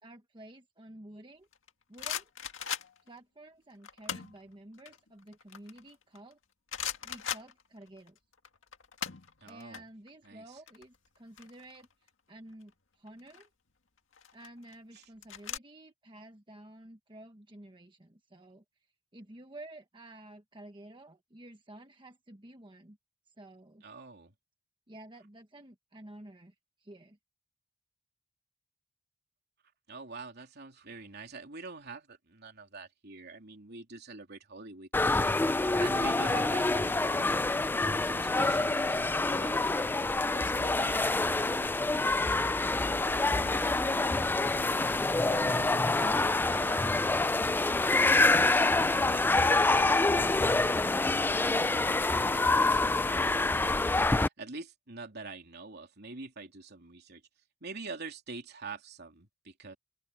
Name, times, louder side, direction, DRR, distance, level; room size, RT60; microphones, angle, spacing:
voice 1, 0.0-1.5 1.9-2.3 3.0-6.4 7.0-8.2 9.4-13.5 14.3-18.6 19.1-23.0 23.3-23.8 24.9-27.2, right 1 dB, 25° right, 1.3 m, -51 dB
sound 1, 1.5-3.2 3.8-4.4 4.8-6.3 6.7-8.1 8.3-9.8 10.1-10.3 10.5-12.1 13.1-13.5 14.1-15.6, left 9 dB, 70° left, 2.0 m, -39 dB
voice 2, 9.4-9.8 10.2-10.4 14.9-15.1 23.8-24.3 29.9-35.1 35.8-37.3 38.0-39.7 40.3-41.7 42.0-42.3 42.9-47.0 47.3-47.4 48.2-49.2 49.6-50.8 51.2-52.0 52.3-57.2 57.6-59.8, right 3 dB, 55° right, 3.3 m, -46 dB
sound 2, 34.9-54.3, left 2 dB, 10° left, 0.3 m, -26 dB
open air
head